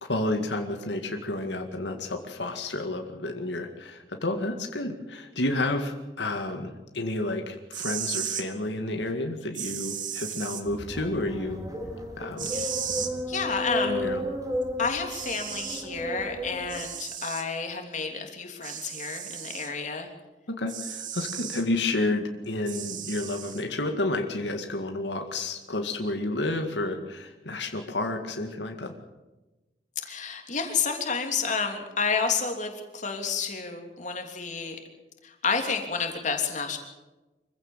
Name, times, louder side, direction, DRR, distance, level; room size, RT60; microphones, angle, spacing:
voice 1, 0.0-11.6 12.2-12.5 13.8-14.2 20.5-28.9, left 2 dB, 90° left, 4 dB, 2.1 m, -30 dB
sound 1, 7.6-8.5 9.5-10.6 12.4-13.1 14.6-14.7 15.1-15.9 16.7-17.5 18.6-19.7 20.7-21.6 22.7-23.6, right 9 dB, 50° right, 2.0 m, -35 dB
sound 2, 10.6-16.8, equal, 20° right, 4.1 m, -33 dB
voice 2, 13.3-14.1 14.8-20.1 30.0-34.8 35.2-36.8, left 5 dB, 45° left, 4 dB, 3.2 m, -30 dB
25.5 x 15.5 x 7.4 m, 1.1 s
head